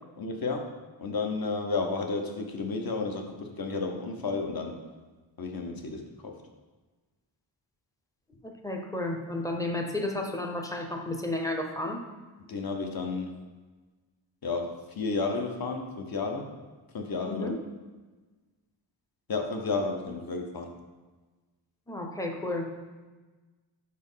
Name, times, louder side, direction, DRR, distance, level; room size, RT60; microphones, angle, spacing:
voice 1, 0.2-0.7 1.0-4.7 5.4-6.3 12.5-13.3 14.4-16.5 16.9-17.5 19.3-20.7, left 4 dB, 50° left, 3 dB, 0.8 m, -32 dB
voice 2, 8.4-12.0 17.3-17.6 21.9-22.7, left 2 dB, 10° left, 3 dB, 0.5 m, -32 dB
5.3 x 4.3 x 5.5 m, 1.3 s
wide cardioid pair, 175°, 46 cm